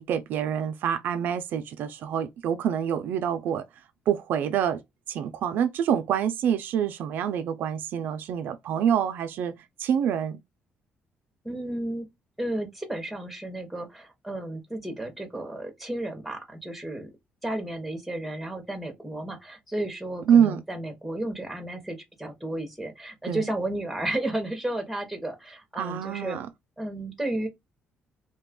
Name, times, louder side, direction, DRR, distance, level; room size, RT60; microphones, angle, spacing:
voice 1, 0.0-3.6 4.1-4.8 5.1-9.5 9.8-10.4 20.3-20.6 23.3-23.4 25.8-26.5, right 8 dB, 65° right, 0.3 m, -26 dB
voice 2, 11.4-12.1 12.4-17.1 17.4-26.4 26.8-27.5, right 1 dB, ahead, 0.7 m, -33 dB
2.7 x 2.3 x 3.5 m
cardioid pair, 175°, 4 cm